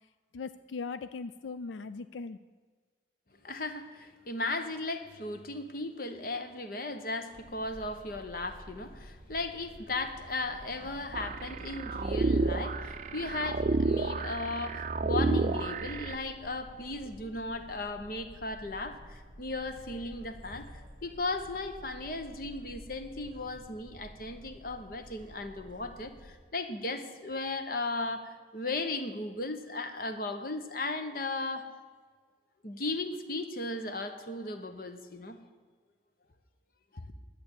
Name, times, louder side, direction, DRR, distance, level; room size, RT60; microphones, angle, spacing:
voice 1, 0.3-2.4, left 4 dB, 90° left, 13 dB, 0.4 m, -39 dB
voice 2, 3.4-20.7 21.0-31.8 32.6-35.4 36.9-37.1, left 2 dB, 50° left, 8 dB, 1.0 m, -36 dB
sound 1, 7.3-26.4, equal, 25° right, 1.3 m, -51 dB
sound 2, 11.1-16.1, right 3 dB, 40° right, 0.5 m, -30 dB
11.5 x 8.3 x 8.3 m, 1.5 s
head